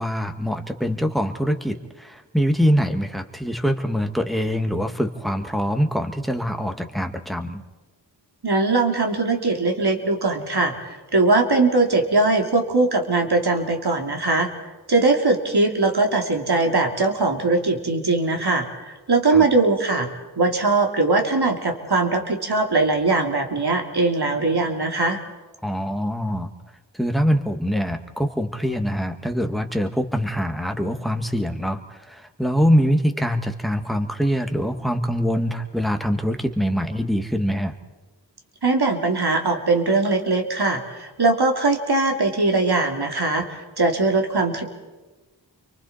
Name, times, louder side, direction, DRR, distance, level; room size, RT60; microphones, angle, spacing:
voice 1, 0.0-7.6 19.3-19.5 25.6-26.5 26.9-37.8, equal, ahead, 5 dB, 1.8 m, -24 dB
voice 2, 8.4-14.5 14.9-20.1 20.4-25.2 38.6-44.6, right 3 dB, 60° right, 3 dB, 2.8 m, -21 dB
30.0 x 24.0 x 4.3 m, 1.2 s
wide cardioid pair, 45°, 43 cm